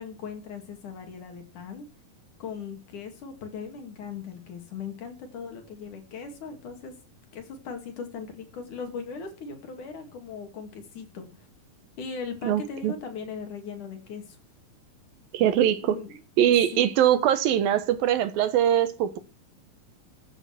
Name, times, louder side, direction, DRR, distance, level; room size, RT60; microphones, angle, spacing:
voice 1, 0.0-1.9 2.4-6.9 7.3-11.3 12.0-14.4 15.8-16.2 16.7-16.9, left 5 dB, 60° left, 3.8 m, -39 dB
voice 2, 12.4-12.9 15.3-16.0 16.4-19.2, right 10 dB, 80° right, 3.0 m, -22 dB
14.0 x 8.0 x 6.0 m
omnidirectional pair, 4.1 m